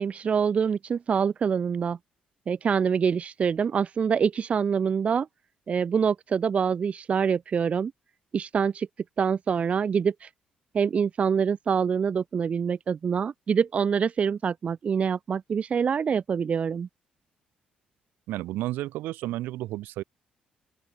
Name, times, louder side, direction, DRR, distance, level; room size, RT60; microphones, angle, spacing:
voice 1, 0.0-2.0 2.5-5.3 5.7-7.9 8.3-8.9 9.2-10.3 10.7-16.9, right 6 dB, 45° right, 0.9 m, -25 dB
voice 2, 18.3-20.0, right 16 dB, 85° right, 1.9 m, -32 dB
open air
cardioid pair, 90°, 3 cm